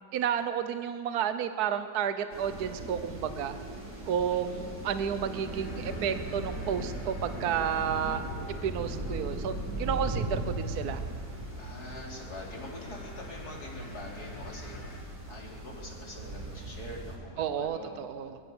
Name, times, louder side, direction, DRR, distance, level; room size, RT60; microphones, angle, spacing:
voice 1, 0.1-3.6 4.1-8.3 8.6-11.0 17.4-18.4, right 8 dB, 65° right, 10 dB, 1.4 m, -31 dB
sound 1, 2.3-17.2, right 2 dB, 90° right, 4.5 m, -38 dB
sound 2, 5.2-15.0, left 2 dB, 25° left, 2.4 m, -47 dB
voice 2, 11.6-18.0, left 1 dB, 65° left, -2 dB, 4.4 m, -45 dB
24.5 x 22.5 x 7.2 m, 2.6 s
omnidirectional pair, 1.8 m